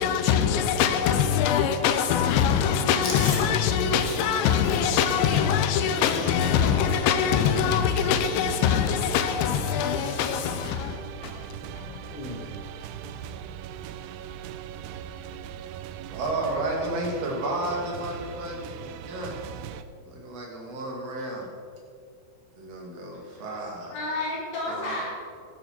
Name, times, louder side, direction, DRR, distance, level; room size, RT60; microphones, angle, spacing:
voice 1, 0.0-11.5 11.8-12.0 12.3-12.5, left 8 dB, 85° left, 3.1 m, -23 dB
Chewing mastication, 3.0-7.2 7.4-7.7 8.0-8.9 9.2-9.5 9.7-10.4 10.8-11.0 12.0-12.4, left 3 dB, 45° left, 1.8 m, -39 dB
sound 1, 3.2-19.8, right 9 dB, 85° right, 2.4 m, -40 dB
voice 2, 16.1-19.4 20.1-21.5 22.6-23.9 24.7-24.9, right 2 dB, 45° right, 2.8 m, -32 dB
voice 3, 23.1-25.1, left 2 dB, 65° left, 5.9 m, -33 dB
14.5 x 11.0 x 4.5 m
omnidirectional pair, 5.1 m